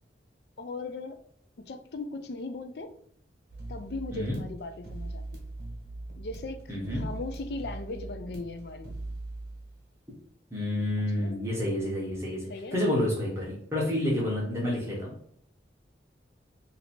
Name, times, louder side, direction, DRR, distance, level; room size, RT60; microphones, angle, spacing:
voice 1, 0.6-1.2 1.6-2.9 3.7-5.4 6.2-6.6 6.9-8.9 11.2-11.4 12.5-12.8 14.3-14.6, left 2 dB, 60° left, 8 dB, 0.4 m, -38 dB
sound 1, 3.5-9.8, right 2 dB, 55° right, 1.2 m, -41 dB
voice 2, 6.7-7.0 10.5-15.1, left 1 dB, 15° right, -5 dB, 1.0 m, -29 dB
2.8 x 2.8 x 4.2 m, 0.63 s
head